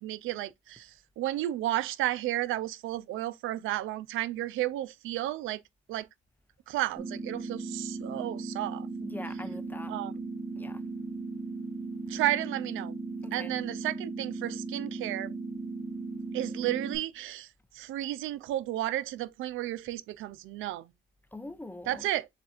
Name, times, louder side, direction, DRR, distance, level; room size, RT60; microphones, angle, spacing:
voice 1, 0.0-5.6 5.9-6.1 6.7-8.9 9.9-10.1 12.1-12.9 13.3-15.4 16.3-17.5 17.7-20.9 21.9-22.3, right 14 dB, 85° right, 0.5 m, -32 dB
sound 1, 7.0-17.0, right 3 dB, 20° right, 1.2 m, -37 dB
voice 2, 9.0-9.9 10.6-10.8 13.2-13.5 21.3-22.1, left 1 dB, 10° left, 0.6 m, -43 dB
7.2 x 2.4 x 2.4 m
cardioid pair, 90°, 20 cm